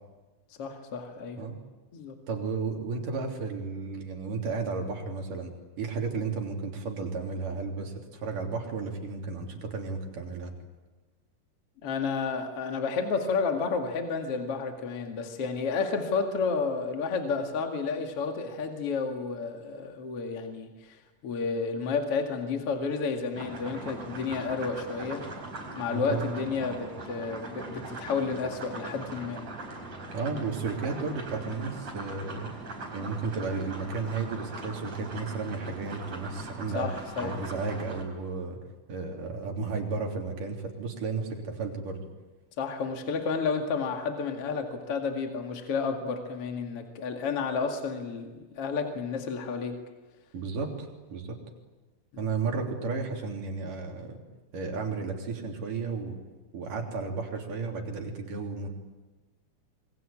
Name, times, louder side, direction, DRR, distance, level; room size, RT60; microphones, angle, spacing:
voice 1, 0.6-1.4 1.9-2.2 11.8-25.3 25.7-29.5 36.7-37.3 42.6-48.3 48.5-49.8 52.1-52.2, left 5 dB, 50° left, 4 dB, 2.9 m, -31 dB
voice 2, 2.3-10.5 25.9-26.3 30.1-32.6 32.9-36.9 37.2-38.6 38.9-42.1 50.3-51.4 52.2-54.2 54.5-56.2 56.5-58.7, right 4 dB, 80° right, 1 dB, 4.9 m, -33 dB
sound 1, 23.3-38.0, right 2 dB, 55° right, 6.0 m, -40 dB
27.0 x 22.5 x 8.9 m, 1.2 s
omnidirectional pair, 3.7 m